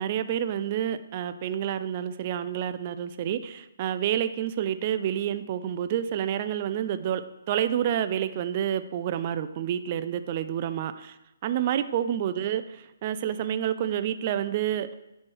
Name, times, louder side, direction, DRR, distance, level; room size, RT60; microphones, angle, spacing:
voice 1, 0.0-11.2 11.4-14.9, right 10 dB, 35° right, 11 dB, 0.3 m, -29 dB
9.5 x 3.2 x 4.5 m, 0.93 s
hypercardioid pair, 160°, 0 cm